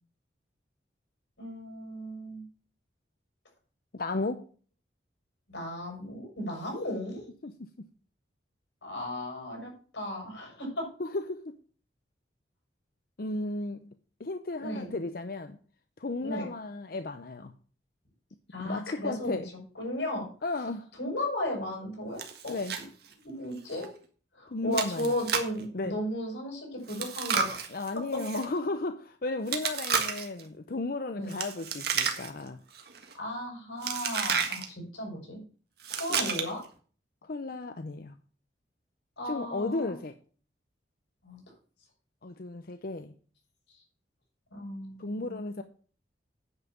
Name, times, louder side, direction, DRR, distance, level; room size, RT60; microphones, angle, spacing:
voice 1, 1.4-2.4 5.5-7.2 8.8-10.9 14.6-14.9 16.2-16.5 18.5-19.3 19.8-20.3 21.0-22.8 23.2-23.9 24.3-27.7 28.1-28.2 31.1-31.3 33.2-35.4 35.9-36.6 39.2-40.0 41.2-41.4 44.5-45.5, left 1 dB, 90° left, 0 dB, 5.6 m, -35 dB
voice 2, 3.9-4.4 7.4-7.5 11.0-11.5 13.2-13.9 14.2-15.6 16.0-17.5 18.6-19.5 20.4-20.9 22.5-22.8 24.5-25.1 25.7-25.9 27.7-32.6 36.1-36.3 37.2-38.2 39.3-40.1 42.2-43.1 45.0-45.6, left 2 dB, 55° left, 8 dB, 0.7 m, -34 dB
Chewing mastication, 22.2-22.8 23.1-23.2 23.7-23.9 24.7-25.6 26.9-28.4 29.5-30.4 31.3-32.5 32.7-33.1 33.8-34.6 35.8-36.6, right 6 dB, 60° right, 1.6 m, -31 dB
9.8 x 5.7 x 7.1 m, 0.42 s
head